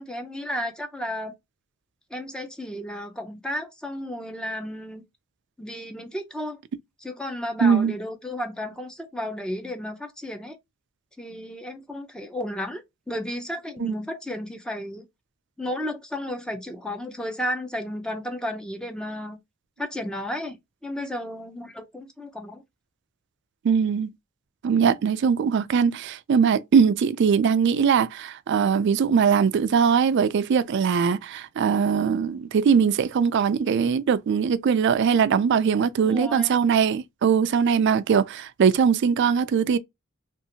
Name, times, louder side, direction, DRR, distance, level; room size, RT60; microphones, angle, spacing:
voice 1, 0.0-1.3 2.1-5.0 5.6-6.6 7.0-10.6 11.2-15.1 15.6-19.4 19.8-20.6 20.8-22.6 36.0-36.5, left 1 dB, 5° left, 0.5 m, -33 dB
voice 2, 7.6-7.9 13.8-14.0 23.6-24.1 24.6-39.8, right 6 dB, 55° right, 0.3 m, -21 dB
2.7 x 2.4 x 2.7 m
head